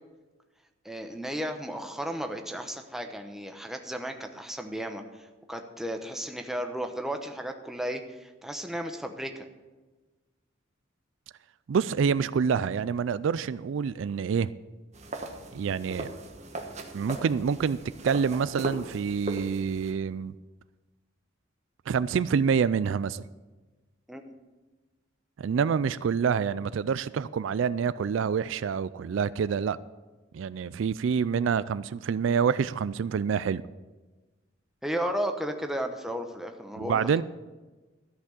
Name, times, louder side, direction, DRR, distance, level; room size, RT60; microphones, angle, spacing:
voice 1, 0.8-9.4 24.1-24.2 34.8-37.2, equal, ahead, 5 dB, 0.9 m, -34 dB
voice 2, 11.7-14.5 15.5-16.1 16.9-17.8 18.0-20.3 21.9-23.2 25.4-29.8 30.3-33.6 36.8-37.2, right 6 dB, 70° right, 17 dB, 0.3 m, -27 dB
sound 1, 14.9-19.9, right 1 dB, 35° right, 1.3 m, -38 dB
13.5 x 6.0 x 8.3 m, 1.2 s
head